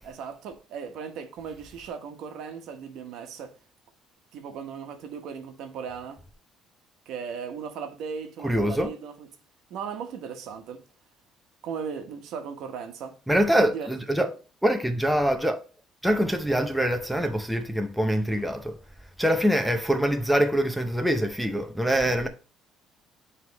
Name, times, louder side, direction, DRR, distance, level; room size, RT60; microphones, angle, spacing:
voice 1, 0.0-3.5 4.3-6.2 7.1-9.3 9.7-10.8 11.6-13.1 13.5-13.9, right 6 dB, 70° right, 1.0 m, -37 dB
voice 2, 8.4-8.9 13.3-14.3 14.6-15.6 16.0-18.8 19.2-22.3, equal, ahead, 0.6 m, -24 dB
9.3 x 3.4 x 3.0 m
cardioid pair, 140°, 0 cm